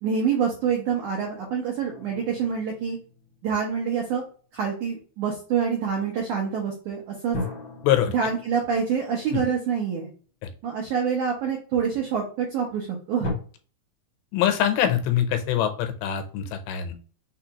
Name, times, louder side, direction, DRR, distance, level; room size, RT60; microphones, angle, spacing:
voice 1, 0.0-3.0 3.4-4.2 4.5-7.4 8.1-10.1 10.6-13.3, right 7 dB, 85° right, -1 dB, 1.7 m, -26 dB
sound 1, 1.9-4.5 7.3-10.7 11.4-11.5 13.2-13.3, left 2 dB, 60° left, 0.9 m, -38 dB
voice 2, 14.3-16.9, left 10 dB, 85° left, 6 dB, 2.9 m, -24 dB
6.3 x 2.4 x 2.8 m, 0.41 s
omnidirectional pair, 4.9 m